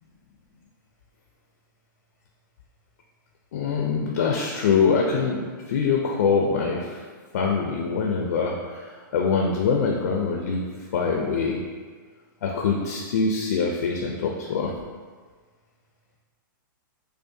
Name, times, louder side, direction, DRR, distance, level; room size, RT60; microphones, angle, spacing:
voice 1, 3.5-7.1 7.3-10.6 10.9-11.6 12.4-14.7, left 5 dB, 50° left, 0 dB, 0.4 m, -24 dB
5.0 x 2.1 x 2.6 m, 1.5 s
hypercardioid pair, 175°, 12 cm